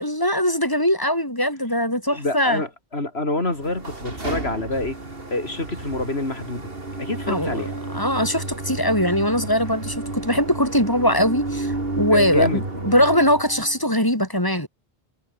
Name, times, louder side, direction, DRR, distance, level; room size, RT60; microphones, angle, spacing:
voice 1, 0.0-2.6 7.3-14.7, equal, 20° left, 7.9 m, -21 dB
voice 2, 2.1-5.0 5.3-6.7 7.0-7.7 12.1-12.6, left 2 dB, 85° left, 4.8 m, -26 dB
sound 1, 3.5-13.8, right 2 dB, 65° right, 3.9 m, -31 dB
omnidirectional pair, 1.0 m